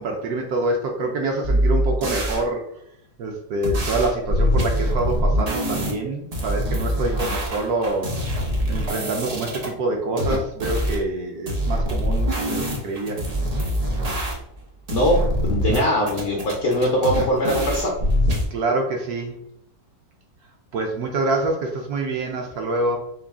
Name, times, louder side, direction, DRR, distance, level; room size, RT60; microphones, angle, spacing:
voice 1, 0.0-2.7 3.2-8.1 8.7-13.2 18.5-19.4 20.7-23.0, right 2 dB, 70° right, 2 dB, 1.1 m, -26 dB
sound 1, 1.4-2.4 3.6-5.9 6.3-9.7 10.2-11.0 11.5-14.6 14.9-15.8 16.1-18.4, equal, 90° right, 0.3 m, -24 dB
voice 2, 15.4-17.9, equal, 60° left, -1 dB, 0.9 m, -21 dB
3.8 x 2.4 x 3.5 m, 0.72 s
omnidirectional pair, 1.9 m